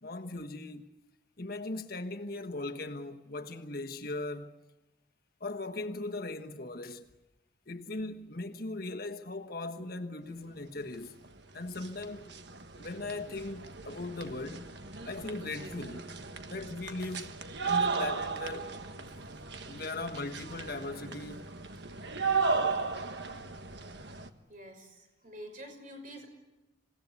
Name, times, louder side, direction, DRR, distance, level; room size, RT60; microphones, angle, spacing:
voice 1, 0.0-0.9 1.4-4.5 5.4-7.0 7.7-11.2 11.5-12.3 12.8-14.7 15.0-16.1 16.5-18.7 19.7-21.5, left 2 dB, 50° left, 1.3 m, -39 dB
sound 1, 11.2-11.3 11.6-24.3, right 4 dB, 65° right, 1.4 m, -35 dB
voice 2, 24.5-26.3, equal, 45° right, 5.9 m, -47 dB
27.0 x 17.5 x 8.4 m
head